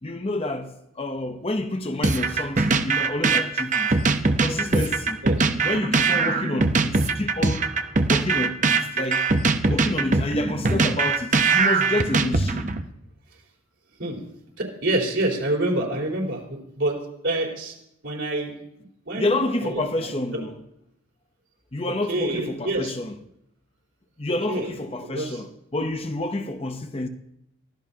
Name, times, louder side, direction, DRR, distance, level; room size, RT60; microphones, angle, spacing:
voice 1, 0.0-3.9 4.4-5.2 5.6-7.7 8.1-9.3 9.7-12.7 19.2-20.5 21.7-23.1 24.2-27.1, left 1 dB, 25° left, 0.8 m, -28 dB
sound 1, 2.0-12.8, right 3 dB, 35° right, 0.8 m, -21 dB
voice 2, 5.2-5.6 14.0-14.2 14.6-17.0 17.2-17.8 18.0-18.6 19.1-20.4 22.1-22.9 24.5-24.7 25.1-25.4, right 1 dB, 60° right, 4.2 m, -27 dB
23.5 x 16.5 x 2.9 m
head